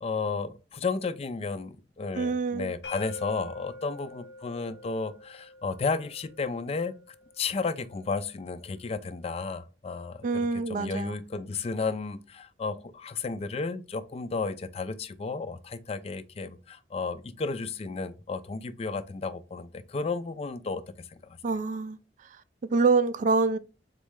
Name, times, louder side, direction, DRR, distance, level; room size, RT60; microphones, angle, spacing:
voice 1, 0.0-6.9 7.4-21.4, left 4 dB, 35° left, 0.4 m, -33 dB
voice 2, 2.2-2.7 10.2-11.1 21.4-22.0 22.6-23.6, right 4 dB, 45° right, 0.3 m, -26 dB
sound 1, 2.8-8.6, left 2 dB, 75° left, 0.7 m, -47 dB
4.0 x 3.1 x 3.5 m
head